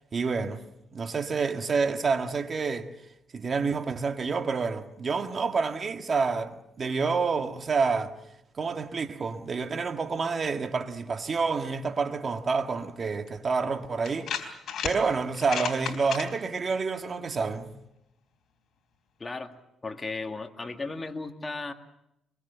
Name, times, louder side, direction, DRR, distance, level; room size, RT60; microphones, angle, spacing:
voice 1, 0.1-0.6 0.9-2.9 3.3-8.1 8.6-14.4 14.8-17.8, right 4 dB, 40° right, 1.8 m, -28 dB
sound 1, 13.3-13.4 14.0-15.0 15.3-16.2, left 8 dB, 60° left, 3.9 m, -32 dB
voice 2, 19.2-19.5 19.8-21.7, left 3 dB, 25° left, 2.1 m, -35 dB
23.5 x 22.0 x 7.0 m
cardioid pair, 95°, 0 cm